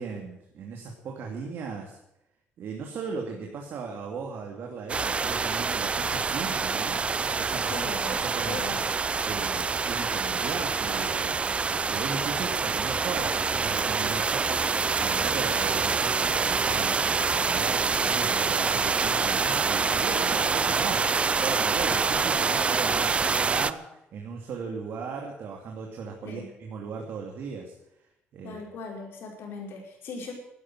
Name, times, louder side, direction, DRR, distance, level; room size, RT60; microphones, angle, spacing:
voice 1, 0.0-2.0 2.6-7.0 7.4-8.8 9.2-14.5 15.0-27.7 28.3-28.6, right 5 dB, 65° right, 1 dB, 2.6 m, -37 dB
sound 1, 4.9-23.7, right 5 dB, 30° right, 0.6 m, -26 dB
voice 2, 7.7-8.9 26.2-26.5 28.4-30.3, left 4 dB, 65° left, 0 dB, 5.2 m, -39 dB
12.0 x 10.5 x 9.1 m, 0.80 s
cardioid pair, 110°, 4 cm